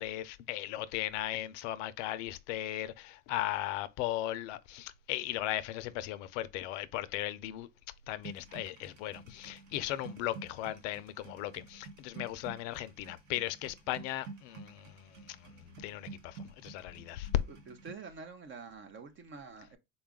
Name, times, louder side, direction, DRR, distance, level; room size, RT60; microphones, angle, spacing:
voice 1, 0.0-7.7 8.1-15.4 15.6-17.3, left 14 dB, 65° left, 0.5 m, -37 dB
sound 1, 8.2-17.9, right 4 dB, 80° right, 1.1 m, -50 dB
voice 2, 17.5-19.8, right 4 dB, 30° right, 0.6 m, -47 dB
4.0 x 2.3 x 3.5 m
hypercardioid pair, 95°, 39 cm